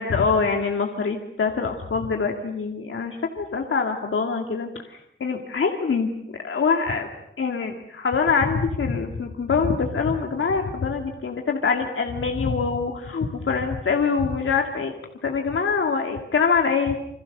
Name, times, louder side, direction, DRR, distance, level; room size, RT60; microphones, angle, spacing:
voice 1, 0.0-4.7 5.2-6.1 6.4-7.1 7.4-14.9 15.2-17.0, left 5 dB, 80° left, 3 dB, 2.3 m, -24 dB
28.5 x 26.0 x 6.7 m, 0.74 s
wide cardioid pair, 115°, 21 cm